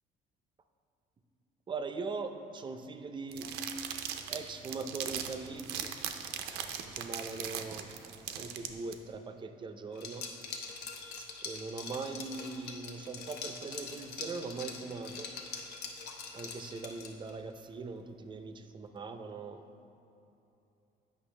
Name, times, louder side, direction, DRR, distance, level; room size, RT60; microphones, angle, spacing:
voice 1, 1.7-3.5 4.3-5.9 7.0-7.9 8.4-10.3 11.4-15.3 16.3-19.6, right 4 dB, 30° right, 7 dB, 0.4 m, -41 dB
sound 1, 3.3-8.9, right 9 dB, 90° right, 0.5 m, -39 dB
Liquid, 10.0-17.4, left 5 dB, 75° left, 0.8 m, -43 dB
8.3 x 5.4 x 3.2 m, 2.9 s
cardioid pair, 110°, 17 cm